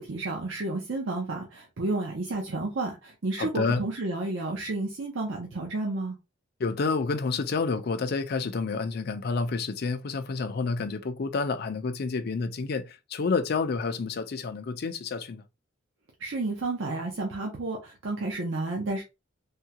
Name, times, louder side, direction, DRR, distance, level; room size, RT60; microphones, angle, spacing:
voice 1, 0.0-6.2 16.2-19.0, right 2 dB, 70° right, 0.7 m, -31 dB
voice 2, 3.4-3.8 6.6-15.4, left 4 dB, 50° left, 0.4 m, -29 dB
3.6 x 2.2 x 2.8 m
head